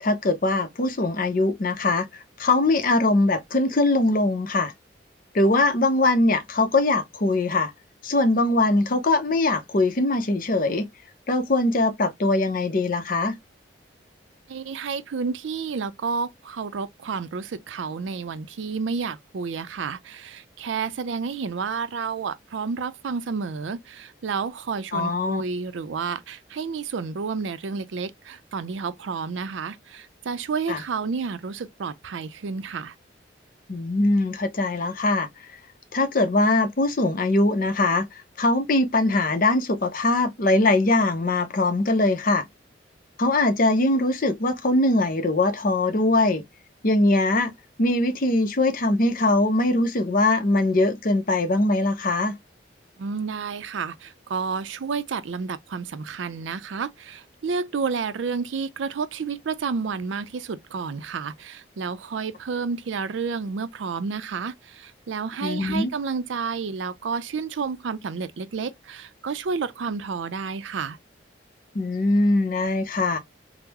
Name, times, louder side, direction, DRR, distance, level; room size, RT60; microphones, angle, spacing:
voice 1, 0.0-4.7 5.3-7.7 8.0-10.9 11.3-13.4 24.9-25.4 30.7-30.8 33.7-35.3 35.9-42.5 43.2-46.4 46.8-47.5 47.8-52.4 65.4-65.9 71.7-73.2, left 2 dB, 50° left, 0.6 m, -22 dB
voice 2, 14.5-32.9 53.0-71.0, right 5 dB, 90° right, 0.4 m, -30 dB
3.6 x 2.0 x 2.9 m
head